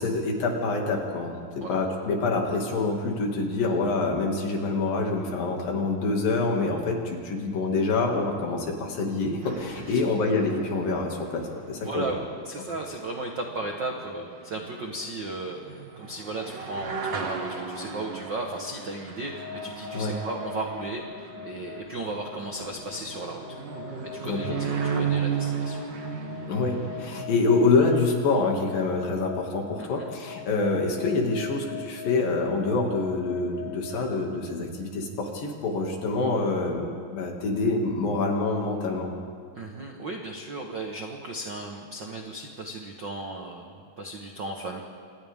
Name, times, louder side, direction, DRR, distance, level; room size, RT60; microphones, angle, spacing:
voice 1, 0.0-12.2 19.9-20.1 24.2-24.4 26.5-39.1, left 3 dB, 70° left, 1 dB, 4.0 m, -26 dB
sound 1, 9.4-27.2, right 6 dB, 45° right, 1.6 m, -35 dB
voice 2, 11.8-23.4 24.0-24.6 24.8-25.8 29.8-30.1 39.5-44.8, right 2 dB, 60° right, 1 dB, 1.1 m, -35 dB
sound 2, 19.2-34.0, left 12 dB, 50° left, 3.7 m, -43 dB
29.0 x 26.5 x 3.7 m, 2.1 s
omnidirectional pair, 4.2 m